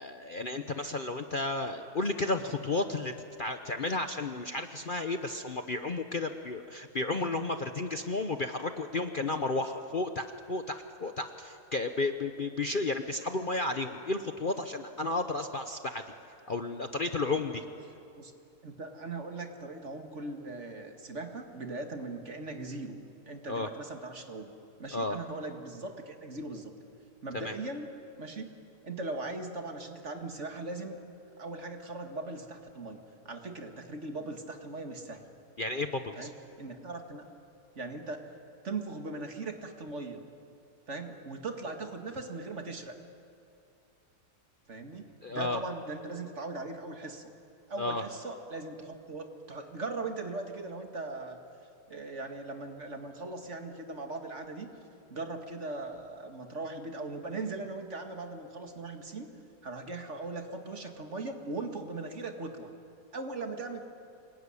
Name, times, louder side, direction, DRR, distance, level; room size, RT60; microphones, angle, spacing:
voice 1, 0.0-3.1 3.4-16.0 16.5-17.6 23.5-23.7 24.9-25.2 27.3-27.5 35.6-36.3 45.2-45.6 47.8-48.0, left 2 dB, 40° left, 6 dB, 0.9 m, -32 dB
voice 2, 18.6-23.0 23.3-24.5 24.8-26.7 27.2-27.9 28.2-28.5 28.8-31.0 31.4-33.0 33.3-35.2 36.2-36.3 36.6-37.3 37.8-38.3 38.6-40.2 40.9-42.9 44.7-47.3 47.7-51.4 51.9-54.7 55.1-59.3 59.6-62.7 63.1-63.8, right 3 dB, 50° right, 4 dB, 2.2 m, -39 dB
25.5 x 22.0 x 9.8 m, 2.6 s
omnidirectional pair, 1.7 m